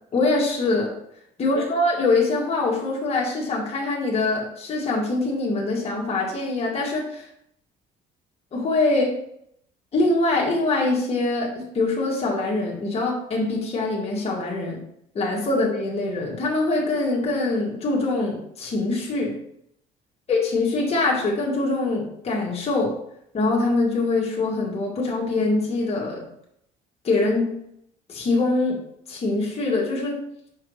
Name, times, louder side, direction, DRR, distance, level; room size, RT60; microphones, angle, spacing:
voice 1, 0.1-0.9 1.4-7.2 8.5-9.1 9.9-14.8 15.1-19.3 20.3-23.0 23.3-26.3 27.0-27.5 28.1-28.8 29.1-30.2, left 2 dB, 35° left, -3 dB, 1.8 m, -23 dB
5.6 x 5.1 x 3.4 m, 0.73 s
cardioid pair, 110°, 17 cm